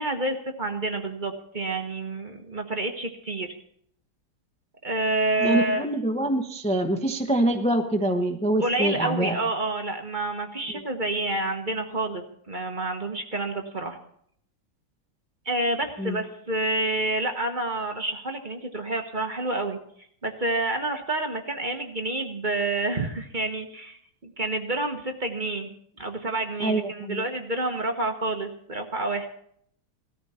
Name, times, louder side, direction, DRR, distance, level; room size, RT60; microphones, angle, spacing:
voice 1, 0.0-3.5 4.8-5.8 8.6-14.0 15.4-19.8 20.2-29.3, right 2 dB, 30° right, 4 dB, 1.0 m, -28 dB
voice 2, 5.4-9.4 16.0-16.2 26.6-27.2, right 1 dB, 10° left, 4 dB, 0.4 m, -25 dB
18.0 x 13.5 x 4.3 m, 0.66 s
omnidirectional pair, 2.3 m